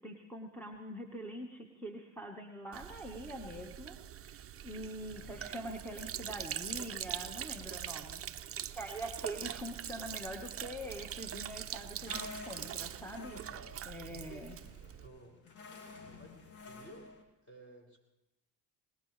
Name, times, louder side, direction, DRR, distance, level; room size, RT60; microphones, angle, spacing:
voice 1, 0.0-4.0 4.2-13.4 13.9-14.6, right 1 dB, 5° left, -1 dB, 1.5 m, -44 dB
Sink (filling or washing), 2.7-15.1, right 10 dB, 30° right, 0.6 m, -43 dB
voice 2, 5.1-5.5 13.5-13.8 14.1-15.4 16.2-16.3 16.6-17.1 17.4-18.0, right 2 dB, 25° left, 1 dB, 6.6 m, -55 dB
sound 1, 12.1-17.2, left 3 dB, 75° left, 2.9 m, -50 dB
21.0 x 20.0 x 3.4 m, 0.95 s
supercardioid pair, 90°, 46 cm